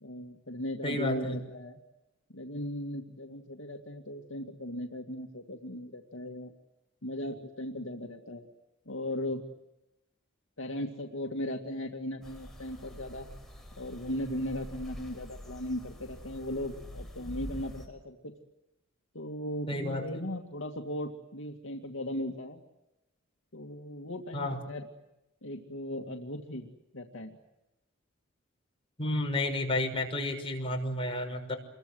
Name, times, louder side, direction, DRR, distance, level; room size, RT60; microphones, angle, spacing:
voice 1, 0.0-1.8 2.3-6.5 7.0-8.5 8.9-9.4 10.6-13.3 13.8-18.3 19.1-22.6 23.5-24.9 25.4-26.7 26.9-27.4, left 1 dB, 65° left, 2 dB, 2.4 m, -37 dB
voice 2, 0.8-1.4 19.7-20.2 24.3-24.6 29.0-31.6, left 1 dB, 25° left, 2 dB, 6.1 m, -31 dB
sound 1, 12.2-17.9, equal, ahead, 5.9 m, -45 dB
28.5 x 23.0 x 8.1 m, 0.94 s
head